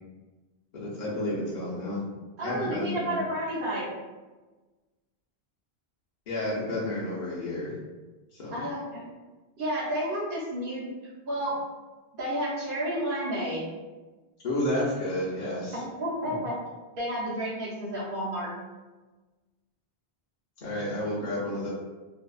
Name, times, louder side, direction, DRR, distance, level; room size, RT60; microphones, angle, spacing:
voice 1, 0.7-2.0 2.4-3.2 6.3-7.7 8.3-8.6 14.4-15.8 16.2-16.3 20.6-21.7, left 1 dB, 55° left, -8 dB, 0.6 m, -31 dB
voice 2, 2.4-3.9 8.5-9.1 9.6-10.8 11.2-11.5 12.2-13.7 15.8-16.5 17.0-18.5, equal, 55° right, -7 dB, 0.9 m, -31 dB
2.6 x 2.2 x 2.3 m, 1.2 s
omnidirectional pair, 1.1 m